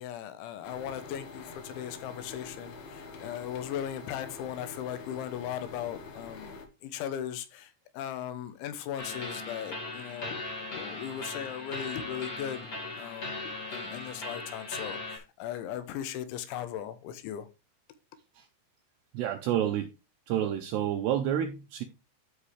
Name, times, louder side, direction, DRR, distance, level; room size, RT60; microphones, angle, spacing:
voice 1, 0.0-10.4 10.7-17.5, left 10 dB, 80° left, 3.2 m, -38 dB
sound 1, 0.6-6.7, left 4 dB, 65° left, 2.9 m, -46 dB
sound 2, 9.0-15.2, left 2 dB, 50° left, 1.1 m, -38 dB
voice 2, 19.1-19.9 20.3-21.8, right 10 dB, 85° right, 2.4 m, -29 dB
12.5 x 5.3 x 3.3 m
omnidirectional pair, 5.6 m